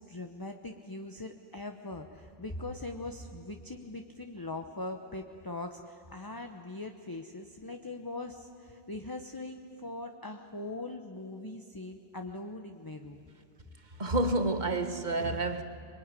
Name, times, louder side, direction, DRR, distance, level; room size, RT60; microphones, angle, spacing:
voice 1, 0.0-13.2, left 2 dB, 20° left, 5 dB, 1.0 m, -41 dB
voice 2, 14.0-15.6, right 2 dB, 40° right, 7 dB, 1.6 m, -29 dB
26.0 x 22.0 x 9.9 m, 2.4 s
omnidirectional pair, 1.1 m